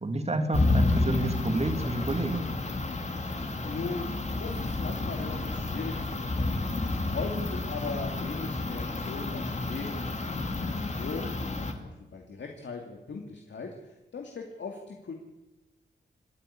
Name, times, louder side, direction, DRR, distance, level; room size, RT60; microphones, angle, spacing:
voice 1, 0.0-2.5, right 2 dB, 35° right, 6 dB, 2.3 m, -30 dB
sound 1, 0.5-11.7, left 2 dB, 40° left, 2.4 m, -30 dB
voice 2, 3.6-6.6 7.1-15.1, left 4 dB, 85° left, 2 dB, 2.4 m, -39 dB
27.5 x 9.8 x 9.9 m, 1.0 s
wide cardioid pair, 100°, 18 cm